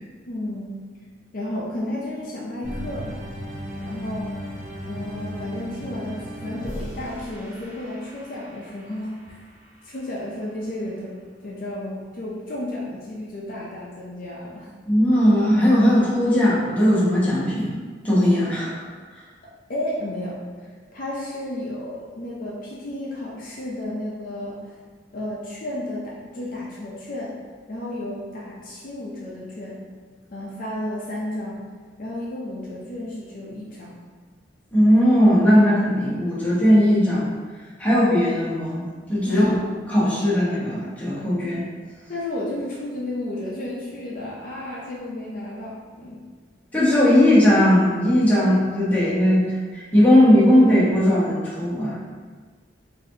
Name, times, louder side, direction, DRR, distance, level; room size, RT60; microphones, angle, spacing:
voice 1, 0.3-0.9 1.3-3.2 3.8-4.4 4.8-9.4 9.8-14.7 19.7-20.4 20.9-24.8 25.1-27.3 27.7-29.8 30.3-31.6 32.0-34.0 39.2-39.5 42.1-46.2, left 1 dB, 50° left, -5 dB, 0.6 m, -32 dB
sound 1, 2.6-9.0, equal, 10° right, 0.9 m, -35 dB
voice 2, 14.9-17.7 18.0-18.9 34.7-37.3 37.8-38.8 39.1-39.6 39.9-41.6 46.7-51.9, equal, 10° left, -9 dB, 1.0 m, -18 dB
3.9 x 2.7 x 2.7 m, 1.5 s
head